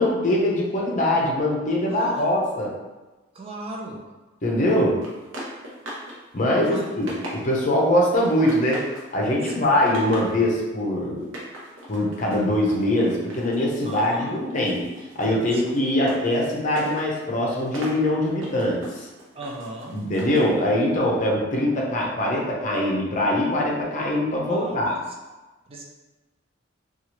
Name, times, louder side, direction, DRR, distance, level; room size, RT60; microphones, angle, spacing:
voice 1, 0.0-2.7 4.4-5.0 6.3-8.9 9.1-11.2 11.9-14.8 15.2-19.1 19.9-25.0, left 1 dB, 40° left, -2 dB, 0.6 m, -22 dB
voice 2, 1.9-2.4 3.3-4.0 6.6-6.9 9.4-9.6 13.8-14.4 15.5-15.6 19.3-19.9 24.5-25.0 25.7-25.8, right 2 dB, 30° right, -1 dB, 0.4 m, -37 dB
sound 1, 5.0-6.2 6.5-7.7 8.2-9.1 9.5-10.4 11.2-14.2 14.5-20.5, equal, 80° right, 0.7 m, -39 dB
2.9 x 2.4 x 2.9 m, 1.1 s
head